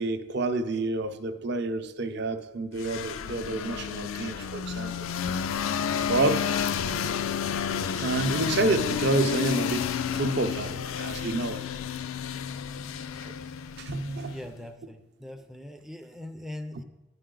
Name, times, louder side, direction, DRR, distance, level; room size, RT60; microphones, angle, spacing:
voice 1, 0.0-5.1 6.0-6.5 6.9-7.2 8.0-11.6 13.2-13.3 13.8-14.4, right 2 dB, 55° right, 8 dB, 0.5 m, -29 dB
sound 1, 2.8-14.5, left 7 dB, 85° left, 0.4 m, -31 dB
voice 2, 14.2-16.8, left 1 dB, ahead, 5 dB, 0.3 m, -41 dB
10.0 x 5.6 x 3.8 m, 1.0 s
head